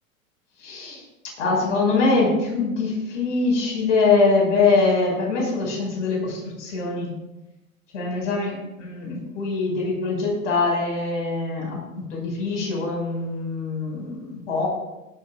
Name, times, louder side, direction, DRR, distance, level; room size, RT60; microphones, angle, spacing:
voice 1, 0.6-1.0 1.4-7.1 7.9-14.7, left 3 dB, 60° left, -1 dB, 5.5 m, -23 dB
18.5 x 13.0 x 2.4 m, 0.99 s
figure-of-eight pair, 90°, 42 cm